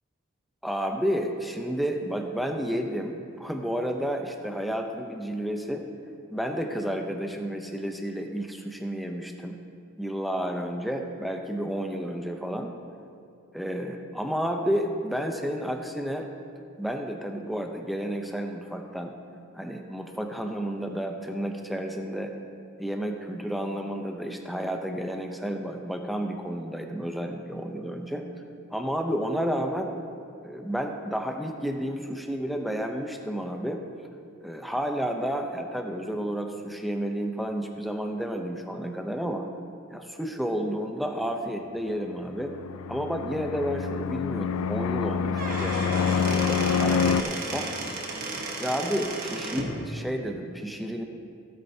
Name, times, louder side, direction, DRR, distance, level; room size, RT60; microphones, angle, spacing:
voice 1, 0.6-5.8 6.3-9.6 10.0-12.7 13.5-16.3 16.8-19.1 19.5-22.3 22.8-28.2 28.7-29.9 30.4-33.8 34.4-39.4 39.9-42.5 42.9-47.7 48.6-51.1, equal, ahead, 3 dB, 0.6 m, -31 dB
Fixed-wing aircraft airplane, 42.3-47.2, left 6 dB, 75° left, 0.3 m, -27 dB
Squeak / Wood, 45.2-49.8, right 2 dB, 40° right, 1.2 m, -34 dB
16.5 x 8.7 x 2.8 m, 2.6 s
head